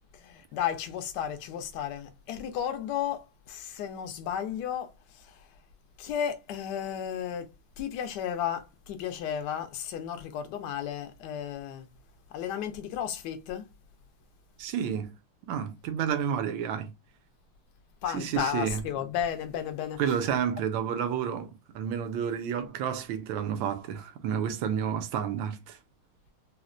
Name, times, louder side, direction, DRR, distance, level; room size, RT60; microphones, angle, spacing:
voice 1, 0.1-5.5 6.0-7.5 7.8-11.8 12.3-13.7 18.0-20.0, left 9 dB, 70° left, 1.0 m, -33 dB
voice 2, 14.6-15.1 15.5-16.9 18.1-18.8 20.0-25.8, right 8 dB, 75° right, 1.2 m, -30 dB
4.2 x 2.0 x 2.4 m
omnidirectional pair, 2.4 m